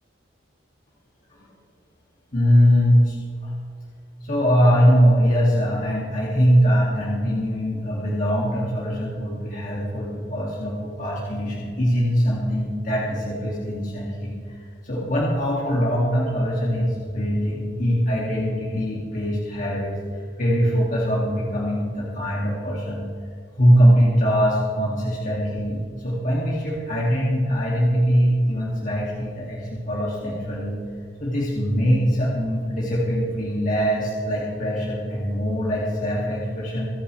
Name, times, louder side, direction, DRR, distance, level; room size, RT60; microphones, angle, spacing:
voice 1, 2.3-3.2 3.4-3.5 4.2-14.6 14.8-23.1 23.6-30.8 31.2-36.9, equal, 45° left, -6 dB, 2.5 m, -22 dB
26.5 x 10.0 x 3.4 m, 2.3 s
head